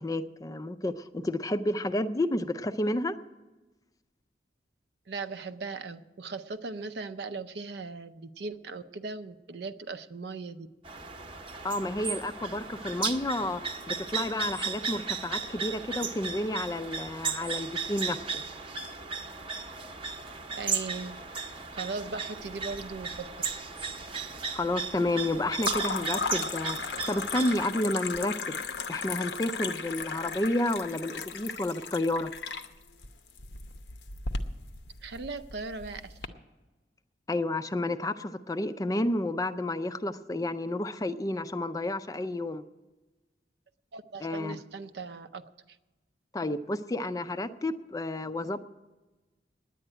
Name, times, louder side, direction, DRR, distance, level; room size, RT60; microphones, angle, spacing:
voice 1, 0.0-3.2 11.6-18.4 24.5-28.6 28.9-32.3 37.3-42.6 44.2-44.6 46.3-48.6, left 1 dB, 20° left, 11 dB, 0.4 m, -31 dB
voice 2, 5.1-10.7 20.5-21.2 21.7-23.4 35.0-36.3 43.9-45.5, right 4 dB, 65° right, 11 dB, 0.6 m, -38 dB
sound 1, 10.8-27.7, right 5 dB, 30° right, 0.8 m, -36 dB
sound 2, 22.4-23.2 23.5-24.1 25.6-36.3, left 4 dB, 75° left, 0.8 m, -36 dB
10.0 x 9.1 x 8.7 m, 1.2 s
head